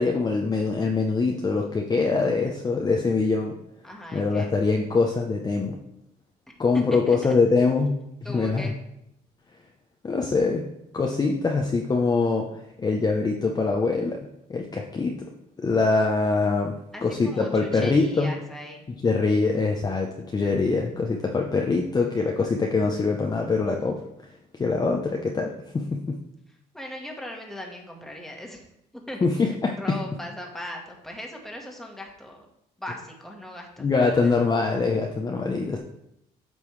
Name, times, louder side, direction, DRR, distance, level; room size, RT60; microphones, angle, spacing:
voice 1, 0.0-3.6 4.1-5.8 6.6-8.0 8.3-8.7 10.0-10.7 10.9-14.2 14.5-15.2 15.6-18.3 19.0-24.0 24.6-26.2 29.2-29.7 33.8-35.8, left 4 dB, 25° left, 1 dB, 0.7 m, -23 dB
voice 2, 3.8-4.5 6.5-6.6 7.1-7.4 8.2-8.8 16.9-18.9 26.5-28.6 28.9-29.4 29.8-32.5 32.8-34.3, left 1 dB, ahead, 0 dB, 1.4 m, -39 dB
8.4 x 5.3 x 3.2 m, 0.80 s
cardioid pair, 110°, 17 cm